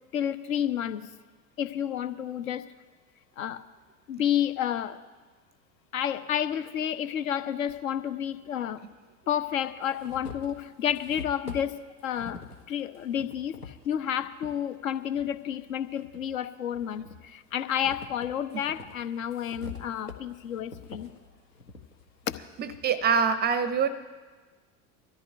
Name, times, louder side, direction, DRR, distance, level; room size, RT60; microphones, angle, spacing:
voice 1, 0.1-1.1 1.6-2.6 3.4-3.6 4.1-5.0 5.9-8.8 9.3-11.7 12.0-12.4 12.7-21.1 22.3-22.4, left 9 dB, 65° left, 12 dB, 0.8 m, -30 dB
sound 1, 7.7-7.8 8.9-9.0 9.4-14.6 15.1-16.3 16.7-22.9, left 4 dB, 90° left, 1.0 m, -46 dB
voice 2, 22.6-23.9, right 6 dB, 25° right, 13 dB, 0.5 m, -24 dB
23.5 x 13.5 x 2.6 m, 1.4 s
figure-of-eight pair, 70°, 45 cm